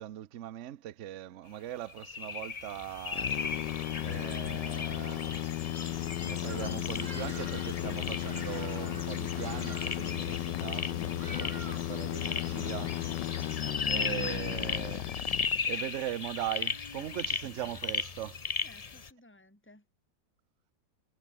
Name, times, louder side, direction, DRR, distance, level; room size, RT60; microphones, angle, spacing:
voice 1, 0.0-3.3 4.0-5.5 6.2-13.0 13.9-15.1 15.7-18.4, right 12 dB, 60° right, 0.8 m, -40 dB
sound 1, 1.9-19.1, left 5 dB, 55° left, 0.4 m, -37 dB
sound 2, 3.1-16.0, left 15 dB, 70° left, 1.2 m, -35 dB
Bird vocalization bird call bird song, 6.4-13.7, right 3 dB, 40° right, 3.6 m, -50 dB
voice 2, 17.3-17.8 18.6-19.8, left 1 dB, 5° left, 4.0 m, -59 dB
omnidirectional pair, 2.1 m